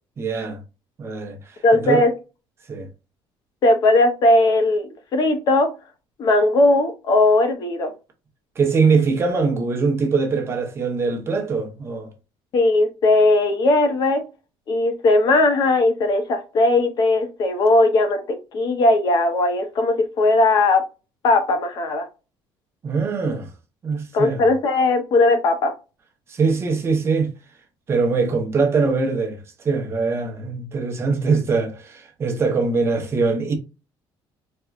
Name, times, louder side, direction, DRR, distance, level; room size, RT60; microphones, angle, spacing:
voice 1, 0.2-0.6 1.0-2.1 2.7-2.9 8.6-12.1 22.8-23.5 23.8-24.5 26.3-27.3 27.9-33.5, right 4 dB, 25° right, 0.8 m, -22 dB
voice 2, 1.6-2.1 3.6-5.7 6.2-7.9 12.5-14.2 14.7-20.8 21.2-22.1 24.1-25.7, left 2 dB, 45° left, 0.8 m, -18 dB
4.3 x 2.3 x 2.4 m
cardioid pair, 165°, 10 cm